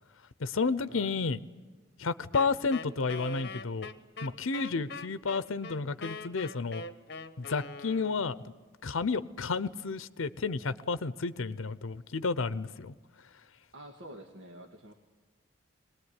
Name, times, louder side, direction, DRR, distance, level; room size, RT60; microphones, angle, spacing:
voice 1, 0.4-1.4 2.0-3.9 4.2-6.8 7.4-8.4 8.8-12.9, left 4 dB, 90° left, 16 dB, 0.7 m, -31 dB
Wind instrument woodwind instrument, 2.3-8.4, left 3 dB, 50° left, 1.2 m, -42 dB
voice 2, 13.7-14.9, right 1 dB, 65° right, 4 dB, 1.7 m, -47 dB
21.5 x 19.5 x 9.8 m, 1.3 s
head